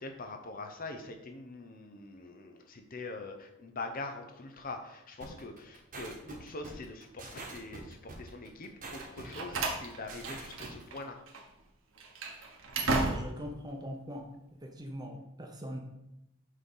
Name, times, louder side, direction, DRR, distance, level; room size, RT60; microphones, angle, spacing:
voice 1, 0.0-11.2, left 2 dB, 40° left, 5 dB, 0.7 m, -43 dB
sound 1, 5.2-10.8, right 2 dB, 40° right, 1.2 m, -45 dB
Slam, 9.0-11.0 11.3-11.4 12.0-13.5, right 2 dB, 65° right, 1.1 m, -34 dB
voice 2, 12.9-14.3 14.6-15.8, equal, 20° right, 2 dB, 0.8 m, -41 dB
6.5 x 3.8 x 5.4 m, 0.84 s
head